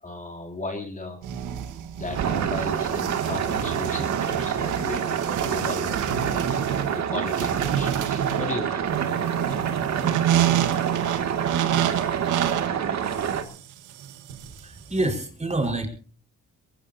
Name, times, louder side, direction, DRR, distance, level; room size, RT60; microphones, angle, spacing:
voice 1, 0.0-1.2 2.0-8.9, left 2 dB, 25° left, 2 dB, 3.2 m, -35 dB
sound 1, 1.2-15.2, right 10 dB, 85° right, 1.6 m, -29 dB
sound 2, 2.1-13.4, right 8 dB, 65° right, 2.4 m, -27 dB
voice 2, 14.5-15.9, right 2 dB, 20° right, 3 dB, 4.9 m, -27 dB
22.5 x 20.0 x 2.8 m, 0.40 s
cardioid pair, 90°, 30 cm